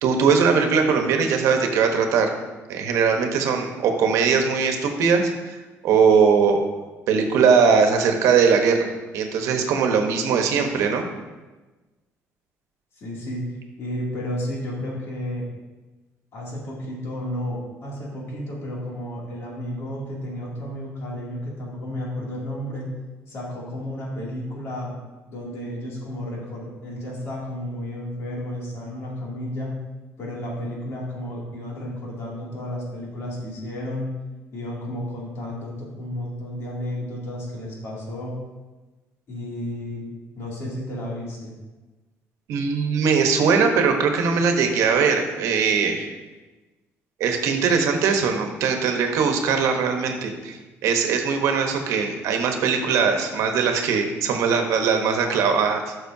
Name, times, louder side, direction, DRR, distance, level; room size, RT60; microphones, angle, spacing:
voice 1, 0.0-2.3 2.7-5.5 5.8-6.6 7.1-11.0 42.5-46.1 47.2-55.9, right 5 dB, 80° right, 4 dB, 1.0 m, -20 dB
voice 2, 13.0-13.4 13.8-15.4 16.3-22.9 23.3-24.9 25.3-29.7 30.2-34.1 34.5-38.4 39.3-40.1 40.4-41.5, left 1 dB, 55° left, -4 dB, 2.6 m, -32 dB
11.5 x 6.3 x 2.7 m, 1.2 s
cardioid pair, 135°, 5 cm